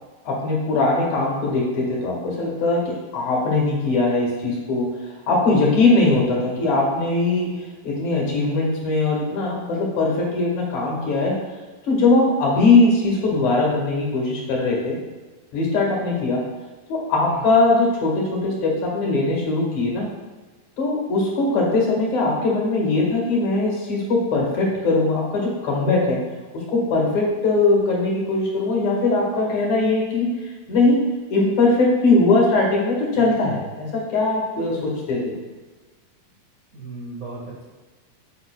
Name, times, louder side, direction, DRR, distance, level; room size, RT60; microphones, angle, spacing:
voice 1, 0.0-4.9 5.3-7.6 7.8-11.4 11.8-15.0 15.5-16.4 16.9-20.1 20.8-26.2 26.5-30.3 30.7-31.0 31.3-35.4, left 3 dB, 60° left, -3 dB, 2.9 m, -20 dB
voice 2, 36.7-37.6, right 2 dB, 55° right, -5 dB, 0.9 m, -36 dB
9.5 x 9.1 x 2.3 m, 1.3 s
omnidirectional pair, 4.1 m